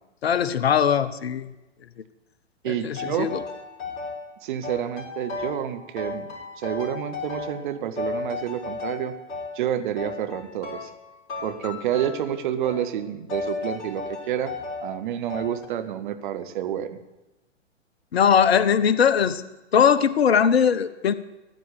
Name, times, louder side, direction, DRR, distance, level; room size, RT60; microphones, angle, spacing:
voice 1, 0.2-1.5 2.7-3.4 18.1-19.4 19.7-21.1, left 7 dB, 55° left, 15 dB, 0.9 m, -20 dB
voice 2, 2.6-3.3 4.4-6.3 6.6-9.2 9.5-10.9 11.4-14.5 14.8-17.0, right 10 dB, 45° right, 10 dB, 1.3 m, -29 dB
sound 1, 2.9-4.2 4.6-5.7 6.0-7.7 8.0-9.5 10.0-11.0 11.3-12.3 12.6-12.9 13.3-14.9 15.3-15.7, left 3 dB, 35° left, 4.4 m, -34 dB
14.5 x 10.0 x 8.3 m, 1.0 s
figure-of-eight pair, 115°, 36 cm